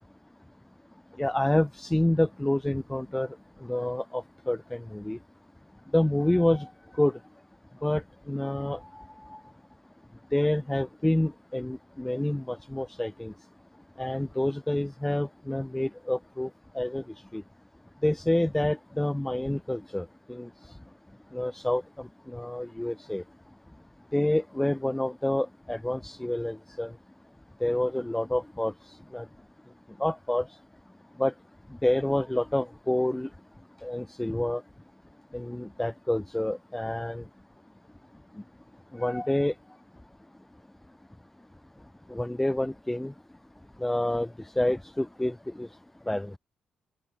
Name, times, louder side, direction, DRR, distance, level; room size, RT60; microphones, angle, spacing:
voice 1, 1.2-3.3 3.6-5.2 5.9-7.2 7.8-9.0 9.3-9.4 10.3-13.3 14.0-16.5 16.7-17.0 17.3-17.4 18.0-20.5 21.3-23.2 24.1-26.9 27.6-28.7 29.1-29.3 30.0-30.5 31.2-31.3 31.8-33.3 33.8-34.6 35.3-37.2 38.9-39.5 42.1-43.1 43.8-44.3 44.6-45.7 46.1-46.3, left 1 dB, 10° left, 7.2 m, -28 dB
open air
cardioid pair, 80°, 3 cm